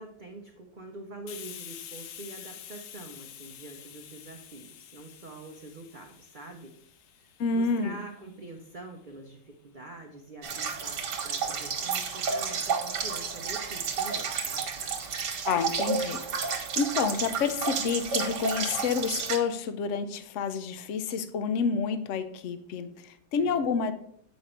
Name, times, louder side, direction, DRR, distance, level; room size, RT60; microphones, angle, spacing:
voice 1, 0.0-6.7 7.2-14.7 23.4-23.7, right 2 dB, 45° right, 2 dB, 0.7 m, -45 dB
Hiss, 1.3-8.7, left 10 dB, 85° left, 1.3 m, -47 dB
voice 2, 7.4-8.0 15.5-23.9, left 5 dB, 60° left, 10 dB, 0.8 m, -29 dB
sound 1, 10.4-19.4, right 5 dB, 75° right, 1.7 m, -31 dB
8.2 x 5.3 x 4.3 m, 0.68 s
omnidirectional pair, 1.9 m